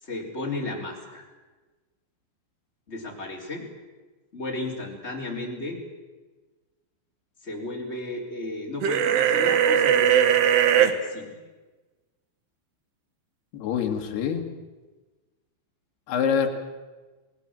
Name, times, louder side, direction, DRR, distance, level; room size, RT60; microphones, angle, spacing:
voice 1, 0.0-1.2 2.9-3.7 4.3-5.8 7.4-10.3 10.7-11.4, left 2 dB, 15° left, -1 dB, 3.8 m, -34 dB
sound 1, 8.8-10.9, right 9 dB, 70° right, 3.0 m, -19 dB
voice 2, 13.5-14.4 16.1-16.5, left 7 dB, 60° left, 3 dB, 3.6 m, -25 dB
28.0 x 18.5 x 7.6 m, 1.3 s
omnidirectional pair, 5.6 m